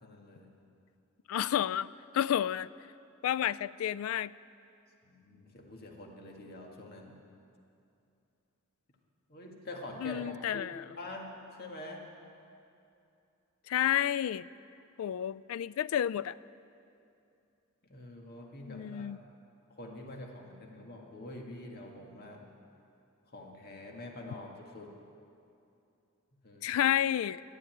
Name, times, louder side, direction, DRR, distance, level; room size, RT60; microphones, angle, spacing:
voice 1, 0.0-0.5 5.0-7.1 9.3-11.3 11.6-12.0 17.8-19.2 19.8-22.4 23.3-24.9 26.4-26.8, left 1 dB, 50° left, 0 dB, 1.9 m, -46 dB
voice 2, 1.3-1.9 2.1-2.7 3.2-4.3 10.0-10.8 13.7-14.5 15.0-16.4 18.7-19.2 26.6-27.4, left 10 dB, 80° left, 19 dB, 0.3 m, -30 dB
13.0 x 9.9 x 9.1 m, 2.6 s
head